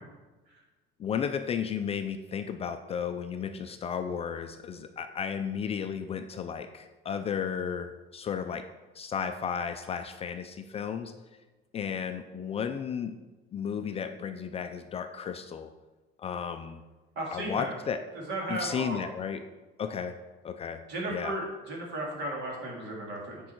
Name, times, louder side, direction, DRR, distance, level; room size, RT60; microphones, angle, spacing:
voice 1, 1.0-8.7 9.0-11.1 11.7-13.2 13.5-15.7 16.2-16.8 17.3-18.0 18.5-19.4 19.8-21.4, left 7 dB, 30° left, 8 dB, 0.4 m, -34 dB
voice 2, 17.2-17.8 18.3-19.0 20.9-23.4, right 2 dB, 55° right, -1 dB, 2.4 m, -35 dB
8.5 x 5.4 x 4.5 m, 1.2 s
cardioid pair, 155°, 21 cm